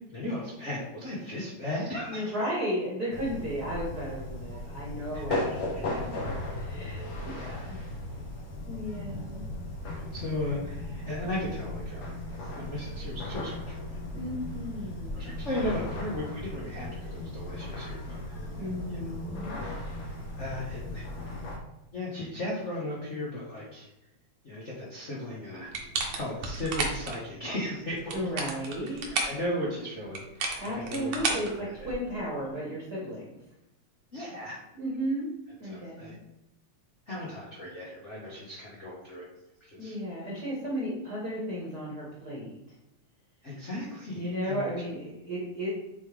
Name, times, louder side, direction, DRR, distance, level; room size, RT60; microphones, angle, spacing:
voice 1, 0.1-2.3 5.1-5.6 7.3-7.9 8.3-8.4 9.9-12.1 12.4-13.6 13.9-14.0 15.1-18.2 18.9-19.0 19.5-19.8 20.4-21.1 21.9-23.9 24.4-25.7 26.1-28.1 28.8-29.0 29.2-30.2 30.7-31.9 34.1-34.6 35.6-36.1 37.1-39.2 39.7-40.0 43.4-44.7, left 1 dB, 85° left, -5 dB, 0.6 m, -36 dB
voice 2, 2.1-7.8 8.7-9.4 14.1-15.4 18.6-19.6 28.1-29.1 30.6-33.3 34.7-35.3 35.6-36.2 39.8-42.5 44.1-45.7, equal, 45° right, -5 dB, 1.4 m, -34 dB
sound 1, 3.1-21.6, left 1 dB, 55° left, 1.7 m, -37 dB
sound 2, 25.7-27.2 27.9-29.4 30.1-32.2, right 3 dB, 65° right, 1.6 m, -32 dB
8.2 x 3.8 x 3.3 m, 0.91 s
omnidirectional pair, 3.4 m